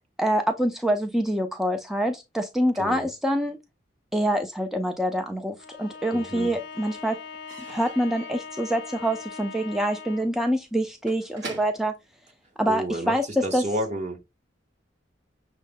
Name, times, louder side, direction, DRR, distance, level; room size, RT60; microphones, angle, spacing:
voice 1, 0.2-3.6 4.1-7.2 7.7-11.9 12.6-13.2 13.5-13.6, equal, ahead, 0.3 m, -25 dB
Slam / Squeak / Wood, 5.2-6.1 6.3-13.1, right 2 dB, 65° right, 1.1 m, -46 dB
Bowed string instrument, 5.6-10.4, left 5 dB, 70° left, 0.7 m, -41 dB
voice 2, 6.1-6.6 12.7-13.2 13.4-14.2, right 1 dB, 40° right, 1.0 m, -30 dB
6.3 x 2.1 x 3.3 m
head